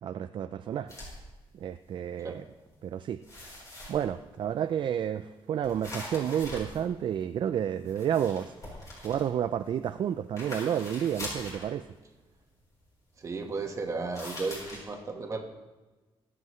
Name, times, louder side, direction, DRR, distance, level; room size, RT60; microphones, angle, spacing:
voice 1, 0.0-0.9 1.5-2.4 2.8-3.2 3.9-8.5 9.0-11.9, right 9 dB, 55° right, 10 dB, 0.3 m, -30 dB
sound 1, 0.9-1.2 1.8-2.1 2.4-2.9 3.2-4.3 5.6-7.3 7.8-10.0 10.3-11.7 14.1-14.8, left 1 dB, 35° left, 4.2 m, -42 dB
voice 2, 13.2-15.4, right 3 dB, 30° right, 2 dB, 1.4 m, -34 dB
22.5 x 7.7 x 3.1 m, 1.2 s
wide cardioid pair, 155°, 10 cm